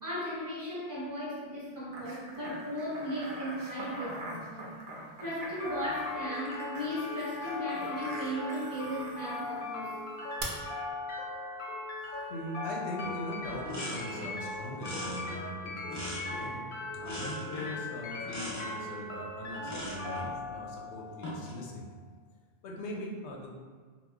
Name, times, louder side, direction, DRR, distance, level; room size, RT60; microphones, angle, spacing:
voice 1, 0.0-4.8 5.2-9.9, equal, 20° right, -9 dB, 0.9 m, -36 dB
sound 1, 1.9-9.6 10.4-10.5, right 2 dB, 65° right, 0.8 m, -43 dB
sound 2, 5.6-21.6, left 2 dB, 60° left, 0.7 m, -39 dB
voice 2, 12.0-16.7 16.9-21.9 22.6-23.5, left 1 dB, 90° left, -1 dB, 0.9 m, -41 dB
sound 3, 13.0-13.2 13.4-14.4 14.8-16.6 17.0-17.8 18.2-18.8 19.6-20.3 21.1-21.6, equal, 20° left, 0.6 m, -40 dB
2.9 x 2.0 x 3.5 m, 1.5 s
omnidirectional pair, 1.1 m